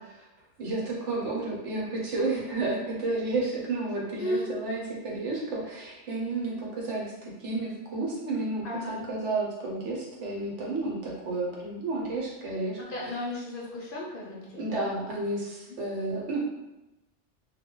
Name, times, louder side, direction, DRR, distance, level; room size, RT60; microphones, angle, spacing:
voice 1, 0.6-13.2 14.6-16.4, right 2 dB, 75° right, -3 dB, 1.1 m, -31 dB
voice 2, 4.2-4.5 8.6-9.1 12.9-14.8 15.7-15.8, left 1 dB, 55° left, -4 dB, 0.7 m, -34 dB
2.2 x 2.1 x 3.6 m, 0.98 s
omnidirectional pair, 1.2 m